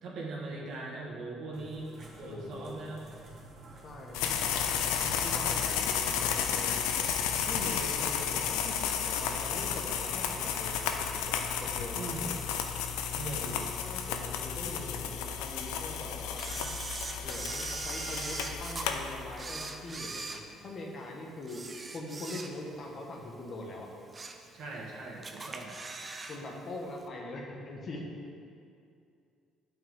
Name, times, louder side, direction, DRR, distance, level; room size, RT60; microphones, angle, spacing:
voice 1, 0.0-1.9 2.2-3.1 11.9-12.2 13.1-13.6 24.5-25.8, right 3 dB, 65° right, -2 dB, 1.5 m, -40 dB
sound 1, 1.5-6.4, right 2 dB, 50° right, 1.5 m, -50 dB
voice 2, 2.2-2.7 3.8-4.4 5.2-6.8 7.5-12.4 13.2-16.6 17.2-21.6 21.9-23.9 26.3-28.0, left 2 dB, 50° left, -1 dB, 1.4 m, -42 dB
sound 2, 4.1-19.6, left 7 dB, 90° left, 0.5 m, -32 dB
Camera, 16.4-18.9 19.3-21.0 21.4-22.8 23.2-23.3 23.8-24.5 24.8-24.9 25.2-26.4 26.6-26.7, right 3 dB, 30° right, 0.7 m, -40 dB
8.2 x 5.9 x 3.7 m, 2.5 s
supercardioid pair, 80°, 0 cm